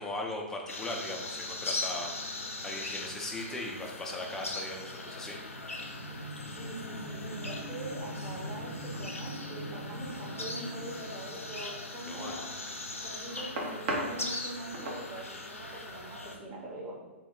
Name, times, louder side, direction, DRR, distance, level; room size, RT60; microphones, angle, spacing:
voice 1, 0.0-5.8 12.0-12.4, left 2 dB, 5° left, 0 dB, 0.4 m, -39 dB
sound 1, 0.7-16.4, left 2 dB, 80° left, 0.4 m, -40 dB
sound 2, 4.8-12.3, equal, 75° right, 1.2 m, -43 dB
voice 2, 6.6-12.4 13.0-16.9, right 1 dB, 25° right, -4 dB, 0.8 m, -43 dB
sound 3, 8.9-9.4 10.8-11.5 12.2-14.1 14.4-15.0, right 1 dB, 55° right, 0.8 m, -36 dB
2.8 x 2.2 x 3.6 m, 1.2 s
figure-of-eight pair, 110°, 7 cm